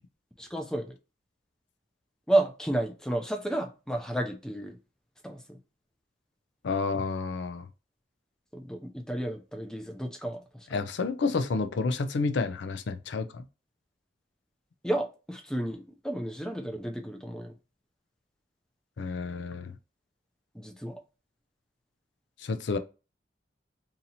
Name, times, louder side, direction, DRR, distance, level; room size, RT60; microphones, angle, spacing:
voice 1, 0.4-1.0 2.3-4.8 5.2-5.6 8.5-10.8 14.8-17.5 20.5-21.0, right 1 dB, 5° left, 0.4 m, -31 dB
voice 2, 6.6-7.7 10.7-13.5 19.0-19.7 22.4-22.8, left 4 dB, 75° left, 0.4 m, -30 dB
2.8 x 2.7 x 4.0 m
head